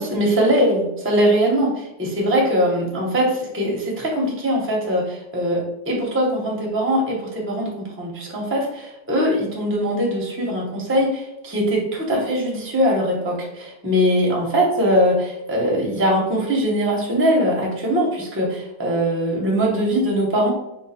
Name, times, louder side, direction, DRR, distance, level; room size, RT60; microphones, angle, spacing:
voice 1, 0.0-20.5, equal, 10° right, -2 dB, 0.6 m, -21 dB
4.6 x 2.4 x 4.2 m, 0.92 s
omnidirectional pair, 2.0 m